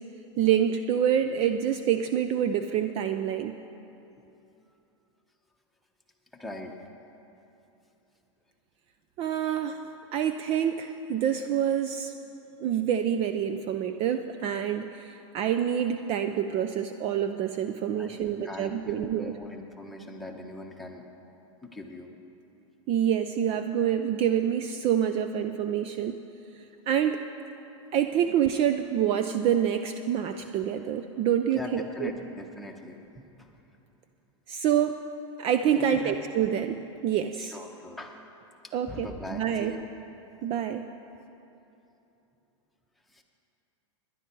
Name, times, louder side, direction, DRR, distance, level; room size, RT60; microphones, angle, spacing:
voice 1, 0.4-3.6 9.2-9.8 10.1-12.1 12.6-19.3 22.9-26.2 26.9-27.2 27.9-32.1 34.5-34.9 35.4-37.6 38.7-39.7 40.4-40.8, right 9 dB, 35° right, 8 dB, 0.5 m, -27 dB
voice 2, 6.3-6.7 9.6-9.8 18.0-21.0 21.6-22.1 31.5-33.5 35.8-36.2 37.4-38.2 38.6-39.9 43.1-43.2, left 2 dB, ahead, 0 dB, 1.3 m, -40 dB
18.5 x 11.0 x 4.6 m, 3.0 s
hypercardioid pair, 125°, 16 cm